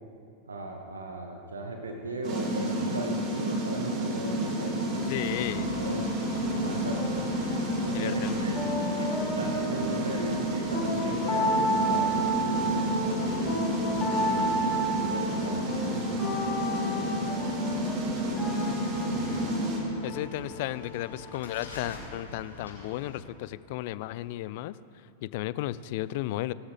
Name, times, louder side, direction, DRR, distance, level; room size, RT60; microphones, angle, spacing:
voice 1, 0.5-5.1 5.7-6.1 6.5-7.2 7.8-8.6 9.0-17.1, right 2 dB, 75° right, 3 dB, 1.1 m, -37 dB
sound 1, 2.2-19.8, right 1 dB, 40° right, 2.8 m, -30 dB
sound 2, 4.2-21.6, right 1 dB, 20° left, 3.4 m, -34 dB
sound 3, 5.1-23.2, left 2 dB, 70° left, 3.3 m, -45 dB
voice 2, 5.1-5.7 7.9-8.6 19.1-19.6 20.0-24.8 25.2-26.5, left 15 dB, 50° left, 18 dB, 0.4 m, -34 dB
18.0 x 12.5 x 3.4 m, 2.5 s
figure-of-eight pair, 90°, 0 cm